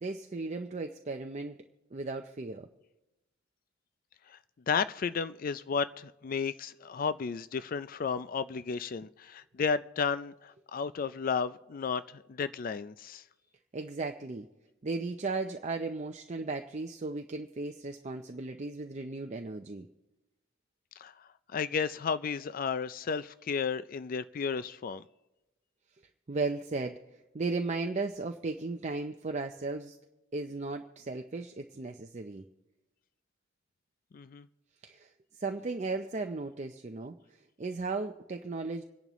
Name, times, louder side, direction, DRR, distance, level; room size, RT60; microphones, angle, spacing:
voice 1, 0.0-1.6 1.9-2.7 13.7-14.5 14.8-19.9 26.3-30.0 30.3-32.4 34.8-37.1 37.6-38.8, right 3 dB, 35° right, 5 dB, 0.6 m, -36 dB
voice 2, 4.7-13.2 21.0-25.0 34.1-34.5, left 6 dB, 45° left, 14 dB, 0.4 m, -33 dB
26.5 x 10.5 x 3.1 m, 0.98 s
head